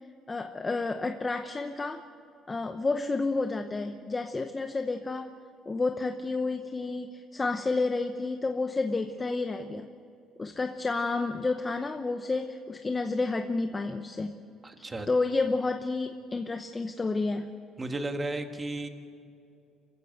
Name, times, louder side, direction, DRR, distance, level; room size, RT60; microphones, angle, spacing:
voice 1, 0.3-2.0 2.5-5.3 5.7-9.9 10.4-14.4 14.8-17.5, left 3 dB, 20° left, 7 dB, 0.9 m, -30 dB
voice 2, 14.6-15.1 17.8-18.9, right 2 dB, 20° right, 6 dB, 1.7 m, -34 dB
26.0 x 15.0 x 7.8 m, 2.6 s
cardioid pair, 120°, 0 cm